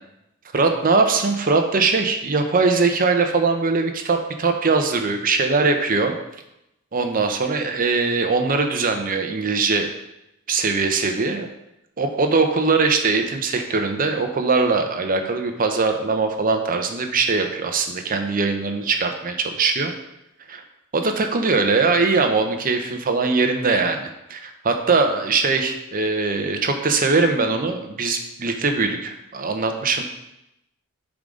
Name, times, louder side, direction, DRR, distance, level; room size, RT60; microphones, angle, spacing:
voice 1, 0.5-6.2 6.9-9.9 10.5-11.5 12.0-19.9 20.5-20.6 20.9-30.0, right 4 dB, 40° right, 5 dB, 0.7 m, -21 dB
7.0 x 3.9 x 5.0 m, 0.88 s
head